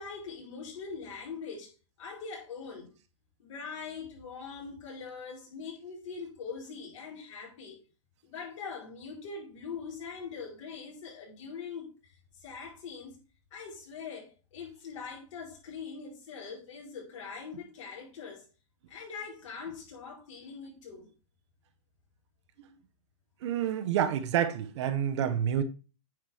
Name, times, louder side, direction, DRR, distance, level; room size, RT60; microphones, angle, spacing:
voice 1, 0.0-2.9 3.4-7.8 8.2-12.1 12.4-13.2 13.5-18.4 18.9-21.1, left 5 dB, 60° left, 4.4 m, -42 dB
voice 2, 23.4-25.6, right 9 dB, 55° right, 1.0 m, -28 dB
9.3 x 4.6 x 3.4 m
hypercardioid pair, 155°, 18 cm